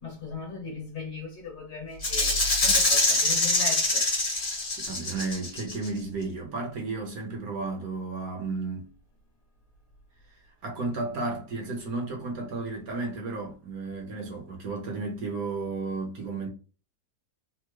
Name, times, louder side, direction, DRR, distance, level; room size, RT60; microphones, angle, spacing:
voice 1, 0.0-4.0, left 2 dB, 50° left, 1.0 m, -37 dB
Rattle (instrument), 2.0-5.9, left 2 dB, 30° left, 0.7 m, -24 dB
voice 2, 4.7-8.9 10.6-16.5, right 3 dB, 65° right, 1.3 m, -33 dB
3.5 x 2.0 x 3.0 m
omnidirectional pair, 1.7 m